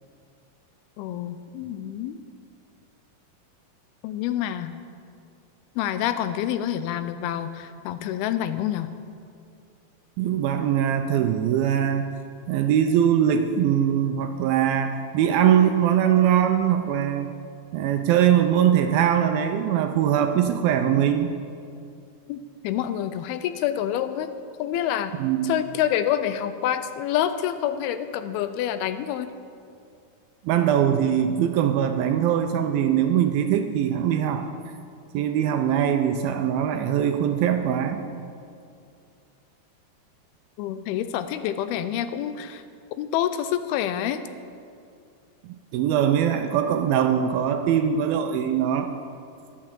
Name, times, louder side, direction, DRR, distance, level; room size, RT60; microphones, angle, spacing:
voice 1, 1.0-2.2 4.0-4.7 5.8-8.9 22.3-24.3 24.6-25.1 25.4-29.3 40.6-42.6 43.0-44.2, left 11 dB, 85° left, 11 dB, 2.4 m, -27 dB
voice 2, 10.2-12.1 12.5-17.3 17.7-21.3 25.2-25.5 30.5-34.5 35.1-38.0 45.4-48.9, right 9 dB, 80° right, 6 dB, 2.2 m, -22 dB
11.5 x 8.3 x 7.5 m, 2.4 s
omnidirectional pair, 4.6 m